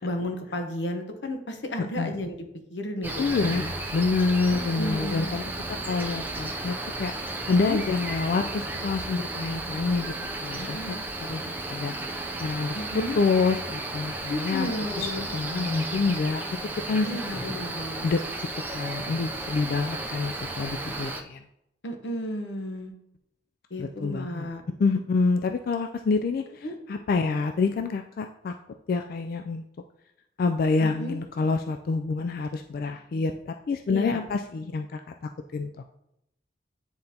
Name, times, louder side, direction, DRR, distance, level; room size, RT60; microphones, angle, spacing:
voice 1, 0.0-3.7 4.5-5.4 7.6-7.8 10.5-11.1 12.7-13.2 14.3-15.3 17.0-18.0 21.8-22.9 23.7-24.6 26.6-26.8 30.8-31.2 33.9-34.2, left 1 dB, 90° left, 5 dB, 0.9 m, -33 dB
Cricket, 3.0-21.2, right 2 dB, 10° right, 0.4 m, -34 dB
voice 2, 3.2-3.6 3.9-5.4 5.9-7.1 7.5-10.1 10.4-10.8 11.2-12.8 13.2-14.7 15.0-15.1 15.3-16.4 16.9-17.1 18.0-18.2 18.5-21.4 23.8-24.5 24.8-26.4 26.9-28.5 28.9-29.6 30.4-35.0 35.5-35.7, left 4 dB, 55° left, 6 dB, 0.3 m, -27 dB
9.5 x 3.9 x 2.8 m, 0.80 s
head